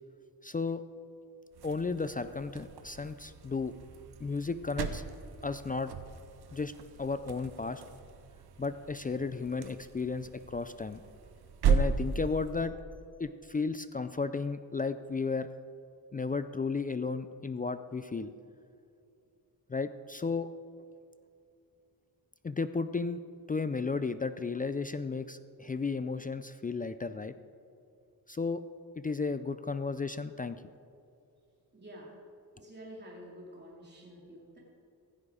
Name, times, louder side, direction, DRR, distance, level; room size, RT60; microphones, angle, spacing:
voice 1, 0.4-0.8 1.6-3.7 4.2-5.0 5.4-5.9 6.5-6.7 7.0-7.8 8.6-11.0 11.6-12.8 13.2-15.5 16.1-18.3 19.7-20.5 22.4-23.2 23.5-27.3 28.3-28.6 29.0-30.6, left 4 dB, 25° left, 11 dB, 0.4 m, -34 dB
sound 1, 1.5-12.7, right 6 dB, 90° right, 1.0 m, -36 dB
voice 2, 31.7-32.2 32.5-34.6, equal, 30° right, -4 dB, 2.9 m, -49 dB
16.0 x 12.0 x 4.9 m, 2.6 s
cardioid pair, 90°, 37 cm